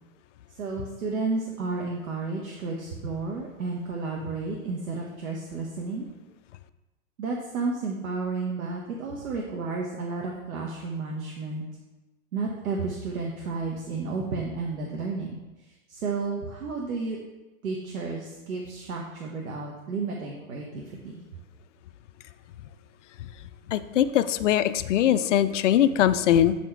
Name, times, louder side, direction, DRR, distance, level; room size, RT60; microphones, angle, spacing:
voice 1, 0.5-6.1 7.2-11.6 12.3-15.4 15.6-17.2 17.6-21.3, right 4 dB, 85° right, -1 dB, 1.3 m, -32 dB
voice 2, 23.7-26.5, left 11 dB, 60° left, 13 dB, 0.5 m, -21 dB
8.1 x 4.3 x 4.5 m, 1.1 s
hypercardioid pair, 155°, 41 cm